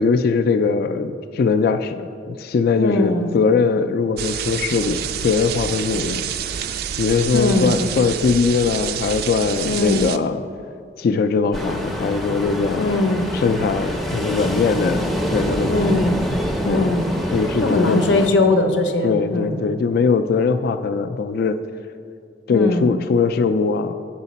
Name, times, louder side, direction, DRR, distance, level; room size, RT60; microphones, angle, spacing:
voice 1, 0.0-6.2 6.5-6.6 7.0-10.4 11.0-13.0 13.3-15.8 16.6-16.9 17.3-18.0 19.0-21.6 22.5-23.9, left 4 dB, 55° left, 10 dB, 0.3 m, -21 dB
voice 2, 2.8-3.3 7.3-7.8 9.6-10.1 12.8-13.3 15.7-16.2 16.6-17.1 17.6-19.6 22.5-22.9, left 2 dB, 85° left, 6 dB, 0.7 m, -20 dB
sound 1, 4.2-10.2, right 9 dB, 60° right, 0.3 m, -28 dB
Ocean, 11.5-18.3, equal, ahead, 0.5 m, -25 dB
8.1 x 6.5 x 4.0 m, 2.4 s
head